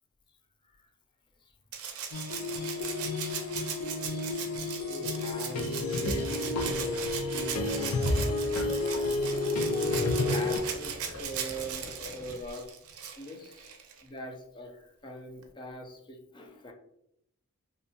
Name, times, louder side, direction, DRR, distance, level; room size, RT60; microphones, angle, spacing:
Rattle (instrument), 1.7-14.0 15.4-15.5, right 7 dB, 80° right, 0.5 m, -39 dB
Candyworld Background Music, 2.1-10.6, left 2 dB, 90° left, 0.4 m, -30 dB
voice 1, 4.9-8.3 9.9-12.7 13.2-16.7, right 1 dB, 20° left, 3 dB, 0.4 m, -42 dB
Livestock farm animals working animals, 6.6-12.4, left 2 dB, 70° left, 1.0 m, -45 dB
2.7 x 2.1 x 2.7 m, 0.78 s
head